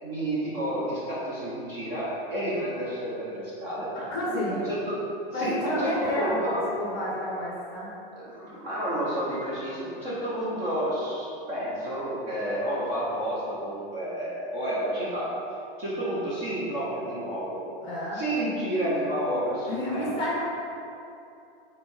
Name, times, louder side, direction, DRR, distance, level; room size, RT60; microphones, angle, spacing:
voice 1, 0.0-3.9 4.5-5.0 5.3-6.6 8.2-15.3 15.8-17.6 18.1-20.1, right 1 dB, 25° right, -8 dB, 1.1 m, -30 dB
voice 2, 3.9-4.7 5.3-7.9 17.8-18.2 19.7-20.4, left 1 dB, 15° left, -6 dB, 1.3 m, -30 dB
5.0 x 4.1 x 5.5 m, 2.7 s
supercardioid pair, 180°, 29 cm